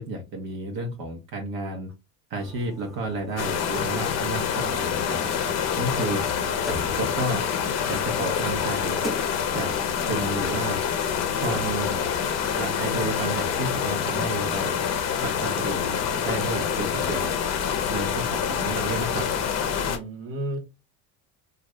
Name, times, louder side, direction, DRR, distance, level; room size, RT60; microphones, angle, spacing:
voice 1, 0.0-1.9 2.3-5.2 5.8-6.3 6.9-7.5 7.9-9.0 9.5-10.8 11.4-12.0 12.6-14.8 15.2-17.3 17.9-19.3, right 2 dB, 55° right, 0.9 m, -31 dB
sound 1, 2.4-12.1, right 1 dB, ahead, 0.5 m, -41 dB
sound 2, 3.4-20.0, left 7 dB, 40° left, 0.7 m, -26 dB
voice 2, 6.1-6.5 19.8-20.6, right 1 dB, 35° right, 1.0 m, -34 dB
2.6 x 2.4 x 3.2 m
cardioid pair, 125°, 40 cm